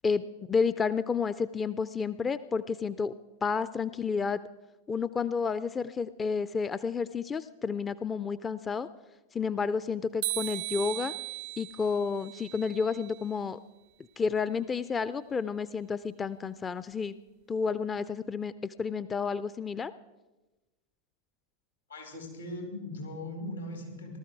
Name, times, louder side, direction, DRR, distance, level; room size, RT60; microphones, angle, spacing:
voice 1, 0.0-3.1 3.4-4.4 4.9-8.9 9.3-11.1 11.6-13.6 14.2-17.1 17.5-19.9, left 5 dB, 20° left, 15 dB, 0.4 m, -31 dB
sound 1, 10.2-13.3, right 18 dB, 50° right, 0.4 m, -37 dB
voice 2, 21.9-24.2, left 1 dB, 80° left, 2 dB, 4.3 m, -39 dB
19.0 x 13.0 x 4.7 m, 1.1 s
figure-of-eight pair, 90°, 0 cm